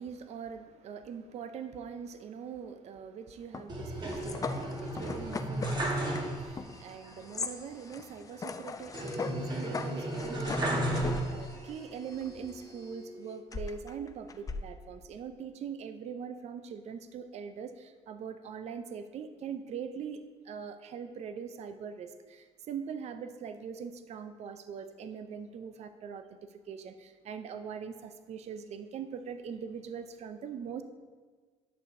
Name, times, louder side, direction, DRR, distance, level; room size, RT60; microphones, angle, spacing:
voice 1, 0.0-26.4 26.7-30.8, right 7 dB, 50° right, 9 dB, 0.5 m, -42 dB
sound 1, 3.5-12.8 13.5-14.6, left 4 dB, 25° left, 0.4 m, -41 dB
sound 2, 3.7-6.7 7.0-7.1 8.9-11.7 12.2-13.0, right 1 dB, 35° right, 1.2 m, -34 dB
11.0 x 6.5 x 2.7 m, 1.5 s
cardioid pair, 100°, 14 cm